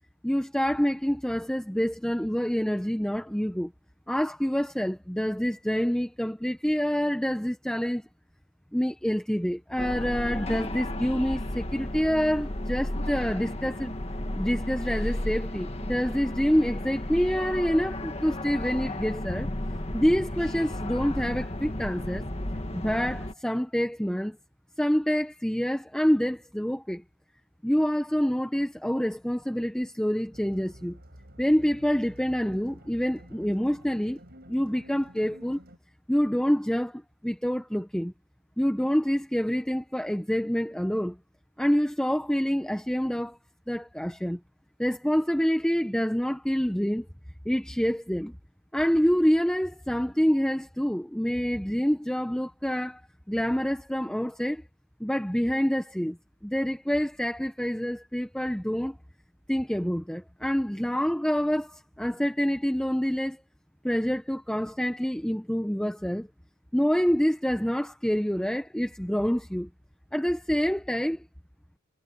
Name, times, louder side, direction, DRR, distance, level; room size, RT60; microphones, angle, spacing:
voice 1, 0.2-3.7 4.1-8.1 8.7-13.9 14.3-19.5 19.9-22.3 22.7-24.4 24.8-27.0 27.6-31.0 31.4-34.2 34.5-35.6 36.1-38.1 38.6-41.2 41.6-43.4 43.7-44.4 44.8-47.1 47.4-48.3 48.7-53.0 53.3-54.6 55.0-56.2 56.4-59.0 59.5-63.4 63.8-66.3 66.7-69.7 70.1-71.2, equal, 5° left, 0.7 m, -27 dB
sound 1, 9.8-23.3, left 1 dB, 30° left, 1.6 m, -33 dB
sound 2, 30.3-35.8, equal, 50° right, 6.6 m, -50 dB
head